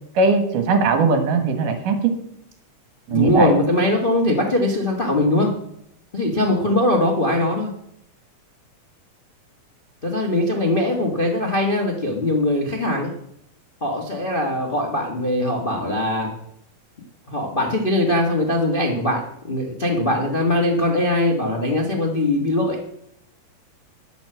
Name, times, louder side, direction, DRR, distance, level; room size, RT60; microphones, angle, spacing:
voice 1, 0.2-2.0 3.1-3.5, right 4 dB, 75° right, 7 dB, 3.0 m, -19 dB
voice 2, 3.1-5.5 6.1-7.7 10.0-13.1 13.8-16.3 17.3-22.8, left 1 dB, 90° left, 0 dB, 0.4 m, -21 dB
10.5 x 7.2 x 7.7 m, 0.75 s
omnidirectional pair, 3.8 m